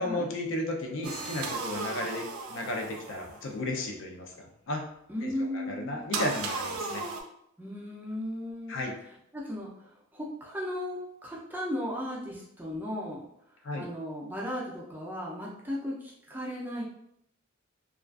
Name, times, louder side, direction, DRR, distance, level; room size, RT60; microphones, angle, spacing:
voice 1, 0.0-2.2 2.5-4.8 5.2-7.0 8.7-8.9 13.6-13.8, left 1 dB, 60° left, 1 dB, 0.4 m, -34 dB
sound 1, 1.0-3.5 6.1-7.2, right 3 dB, 90° right, 0.4 m, -35 dB
voice 2, 5.1-6.0 7.6-8.9 9.3-13.3 13.7-16.8, left 1 dB, 10° right, -4 dB, 0.4 m, -36 dB
2.4 x 2.3 x 2.3 m, 0.74 s
head